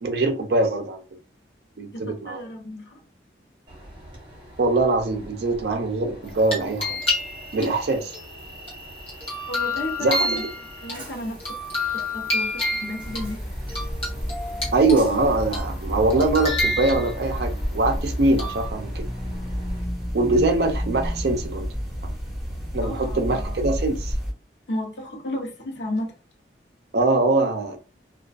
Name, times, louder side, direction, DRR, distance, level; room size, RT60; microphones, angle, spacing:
voice 1, 0.0-1.0 1.8-2.4 4.6-7.0 7.5-8.1 10.0-10.3 14.7-19.1 20.1-21.7 22.0-22.1 22.7-24.1 26.9-27.8, right 2 dB, 60° right, 0.4 m, -22 dB
voice 2, 1.9-3.0 9.5-10.3 10.8-11.4 11.9-13.4 22.8-23.8 24.7-26.2, left 1 dB, 70° left, 0.7 m, -33 dB
Train, 3.7-19.8, right 1 dB, 25° right, 1.0 m, -44 dB
sound 1, 6.2-7.6 8.1-11.0 11.4-13.3 13.7-15.2 15.5-15.8 16.1-17.4 18.4-18.7, left 2 dB, 30° left, 1.0 m, -29 dB
sound 2, 13.0-24.3, equal, 5° right, 1.2 m, -30 dB
2.4 x 2.2 x 2.3 m
head